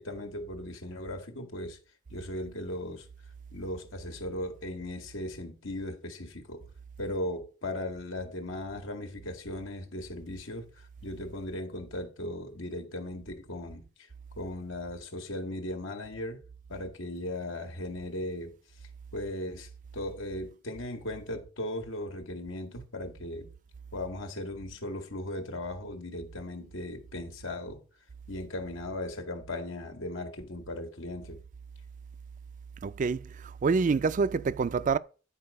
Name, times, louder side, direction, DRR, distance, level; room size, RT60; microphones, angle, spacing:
voice 1, 0.0-1.8 2.1-3.1 3.5-6.7 7.0-14.1 14.4-16.4 16.7-18.5 19.1-23.5 23.9-27.8 28.3-31.4, left 1 dB, 85° left, 1.7 m, -37 dB
voice 2, 32.8-35.0, right 5 dB, 40° right, 0.3 m, -27 dB
9.6 x 4.6 x 5.2 m
head